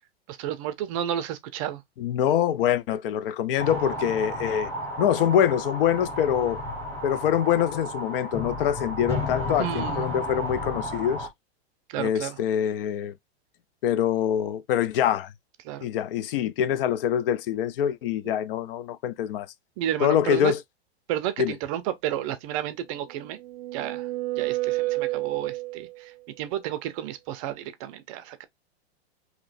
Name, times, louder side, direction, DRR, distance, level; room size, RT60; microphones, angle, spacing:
voice 1, 0.3-1.8 9.6-10.1 11.9-12.4 15.6-15.9 19.8-20.5 21.1-23.4 23.7-24.1 24.4-28.4, right 11 dB, 35° right, 0.5 m, -31 dB
voice 2, 2.0-4.7 5.0-6.6 7.0-11.3 12.0-13.1 13.8-15.3 15.8-19.5 20.0-20.6 21.4-21.5, left 10 dB, 60° left, 0.5 m, -25 dB
sound 1, 3.6-11.3, left 1 dB, 10° left, 1.0 m, -33 dB
sound 2, 23.0-26.1, right 19 dB, 85° right, 0.5 m, -30 dB
3.0 x 2.8 x 4.1 m
supercardioid pair, 150°, 32 cm